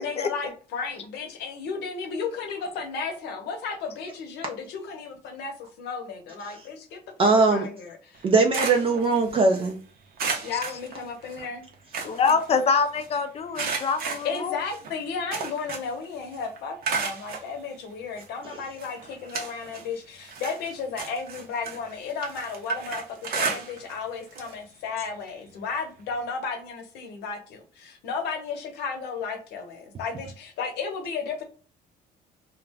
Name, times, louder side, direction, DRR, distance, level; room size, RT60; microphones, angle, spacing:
voice 1, 0.0-8.3 8.7-9.0 10.4-11.6 14.2-31.4, left 5 dB, 80° left, 4 dB, 0.8 m, -34 dB
voice 2, 7.2-7.7 8.2-9.8, right 3 dB, 35° right, 2 dB, 0.4 m, -20 dB
sound 1, 8.1-9.7 10.2-11.5 11.7-13.1 13.5-16.0 16.3-17.5 18.2-18.3 18.8-19.9 20.2-24.0 24.3-24.5 24.9-25.0 26.2-26.3, right 5 dB, 60° right, 0.7 m, -33 dB
voice 3, 12.1-14.6, left 5 dB, 35° left, 8 dB, 0.4 m, -25 dB
2.4 x 2.1 x 3.4 m, 0.39 s
cardioid pair, 110°, 17 cm